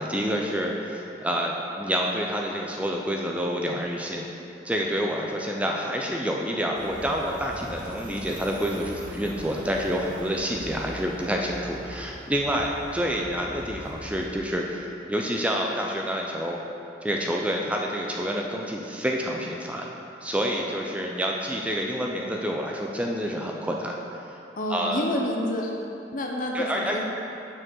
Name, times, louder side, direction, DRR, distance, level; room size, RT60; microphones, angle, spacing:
voice 1, 0.0-4.2 4.6-16.6 17.0-19.9 20.2-24.0 24.7-25.1 26.5-27.0, equal, 5° right, 0 dB, 0.4 m, -28 dB
sound 1, 6.7-14.3, right 1 dB, 45° right, 0.8 m, -42 dB
voice 2, 24.6-25.7 26.1-27.0, left 1 dB, 45° left, 1 dB, 0.8 m, -28 dB
6.1 x 4.6 x 6.3 m, 2.7 s
head